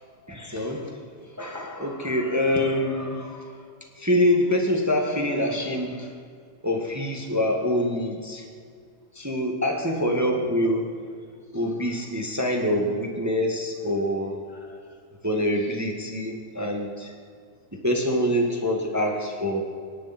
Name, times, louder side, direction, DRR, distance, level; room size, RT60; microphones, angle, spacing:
voice 1, 0.3-3.7 3.9-6.2 6.6-8.5 9.1-11.2 11.5-14.9 15.2-17.1 17.7-19.6, left 1 dB, 15° right, 2 dB, 0.6 m, -26 dB
25.0 x 11.5 x 4.3 m, 2.1 s
omnidirectional pair, 3.3 m